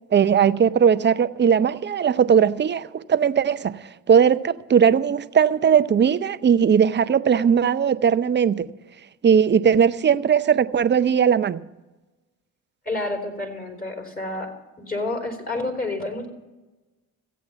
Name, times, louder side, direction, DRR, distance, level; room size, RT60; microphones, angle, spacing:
voice 1, 0.1-8.7 9.2-11.6, right 7 dB, 30° right, 0.6 m, -19 dB
voice 2, 12.9-14.5 14.8-16.3, left 2 dB, 25° left, 3.6 m, -29 dB
14.5 x 8.5 x 6.8 m
supercardioid pair, 65°, 37 cm